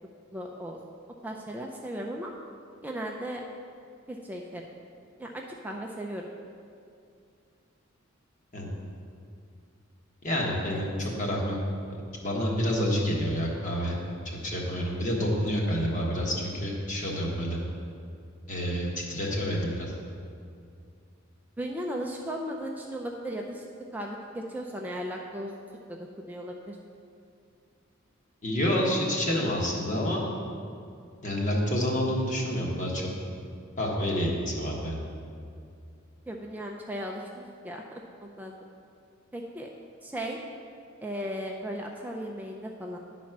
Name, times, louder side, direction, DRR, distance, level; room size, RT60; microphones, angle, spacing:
voice 1, 0.3-0.8 1.2-2.3 2.8-3.4 4.1-4.6 5.2-6.2 10.6-10.8 21.6-23.6 23.9-25.5 26.2-26.8 36.3-38.5 39.3-39.7 40.0-40.4 41.0-43.0, equal, 10° right, 0 dB, 0.4 m, -36 dB
voice 2, 10.2-11.6 11.9-14.0 14.4-17.6 18.5-19.9 28.4-30.2 31.2-33.0 33.8-35.0, equal, 40° left, -2 dB, 1.4 m, -28 dB
10.5 x 4.2 x 5.9 m, 2.4 s
head